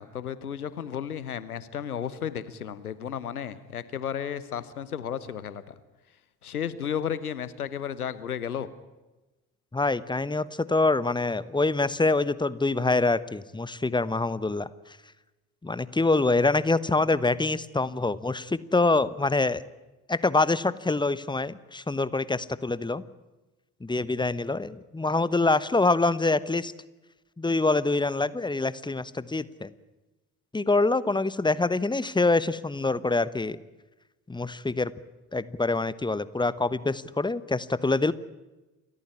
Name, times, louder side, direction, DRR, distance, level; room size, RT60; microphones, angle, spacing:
voice 1, 0.0-5.7 6.4-8.7, left 8 dB, 85° left, 16 dB, 1.0 m, -33 dB
voice 2, 9.7-15.0 15.6-19.6 20.1-23.0 23.8-26.7 27.4-29.7 30.5-33.6 34.3-34.9 35.3-38.1, left 3 dB, 10° left, 18 dB, 1.1 m, -25 dB
29.5 x 14.0 x 10.0 m, 1.1 s
figure-of-eight pair, 45°, 43 cm